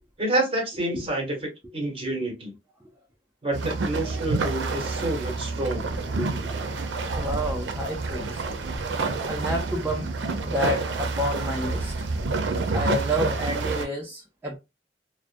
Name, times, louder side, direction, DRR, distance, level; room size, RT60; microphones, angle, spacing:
voice 1, 0.2-2.5 3.4-5.9, right 1 dB, 30° right, 1.0 m, -28 dB
sound 1, 3.5-13.9, right 3 dB, 85° right, 0.5 m, -28 dB
voice 2, 7.2-8.4 9.3-10.1 10.4-11.9 12.7-14.6, equal, 10° right, 0.4 m, -29 dB
2.4 x 2.1 x 2.5 m
head